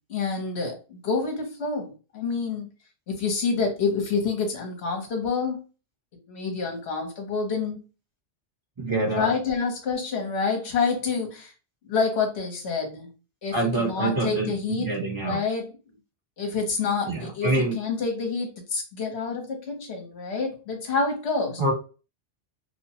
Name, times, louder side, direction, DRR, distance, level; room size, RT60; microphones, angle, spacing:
voice 1, 0.1-2.7 3.1-5.6 6.3-7.8 9.1-11.5 11.8-13.1 13.4-14.9 15.2-15.7 16.4-21.6, left 4 dB, 60° left, 3 dB, 1.2 m, -28 dB
voice 2, 8.8-9.3 13.5-15.4 17.0-17.8 21.6-21.7, right 2 dB, 25° right, -3 dB, 1.0 m, -26 dB
2.9 x 2.2 x 2.8 m, 0.33 s
omnidirectional pair, 1.3 m